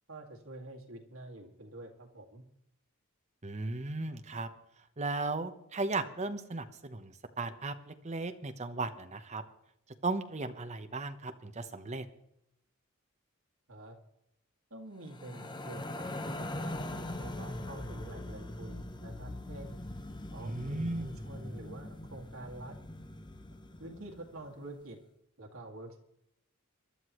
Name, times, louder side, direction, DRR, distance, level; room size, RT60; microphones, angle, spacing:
voice 1, 0.1-2.4 13.7-14.0 14.7-19.8 20.3-22.8 23.8-25.0 25.4-26.0, right 1 dB, 70° right, 1 dB, 2.3 m, -47 dB
voice 2, 3.4-4.5 5.0-9.4 10.0-12.1 20.4-21.1, right 3 dB, 30° right, 7 dB, 1.0 m, -36 dB
sound 1, 15.1-24.4, left 1 dB, 20° left, 0.8 m, -41 dB
24.0 x 11.5 x 3.2 m, 0.80 s
head